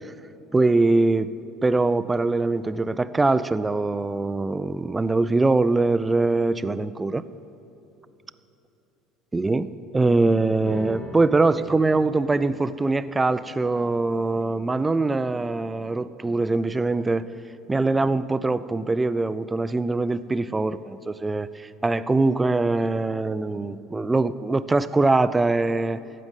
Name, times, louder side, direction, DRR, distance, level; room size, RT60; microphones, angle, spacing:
voice 1, 0.5-1.3 1.6-7.2 9.3-17.3 17.7-26.0, right 3 dB, 15° right, 14 dB, 0.4 m, -23 dB
sound 1, 10.6-17.4, left 1 dB, 35° left, 2.7 m, -45 dB
15.0 x 5.2 x 8.2 m, 2.9 s
supercardioid pair, 100°, 0 cm